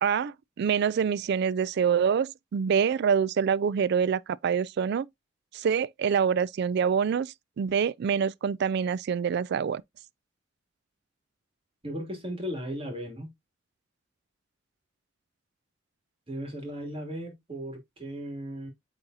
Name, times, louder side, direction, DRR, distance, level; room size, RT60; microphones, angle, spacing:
voice 1, 0.0-5.1 5.5-9.8, right 7 dB, 60° right, 0.3 m, -26 dB
voice 2, 11.8-13.3 16.3-18.7, equal, 30° right, 2.6 m, -36 dB
8.8 x 3.9 x 2.7 m
head